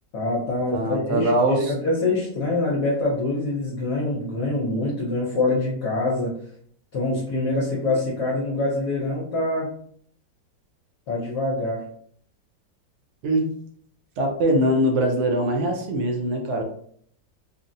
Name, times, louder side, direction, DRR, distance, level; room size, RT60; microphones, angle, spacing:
voice 1, 0.1-1.3 1.6-6.3 6.9-9.7 11.1-11.8, left 2 dB, 65° left, -5 dB, 1.2 m, -25 dB
voice 2, 0.7-1.7 13.2-13.5 14.2-16.6, right 1 dB, 70° right, 2 dB, 1.0 m, -22 dB
3.7 x 2.1 x 2.6 m, 0.62 s
omnidirectional pair, 2.1 m